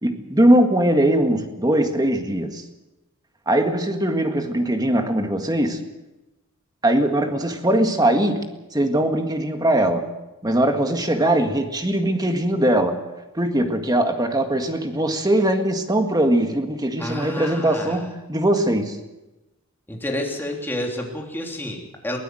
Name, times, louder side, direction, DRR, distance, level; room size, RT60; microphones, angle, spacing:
voice 1, 0.0-2.6 3.5-5.8 6.8-8.5 8.7-10.1 10.4-13.0 13.4-19.0, right 1 dB, 20° right, 6 dB, 1.9 m, -20 dB
voice 2, 17.0-18.0 19.9-22.2, left 1 dB, 10° left, 0 dB, 3.3 m, -29 dB
23.0 x 16.5 x 7.8 m, 1.0 s
head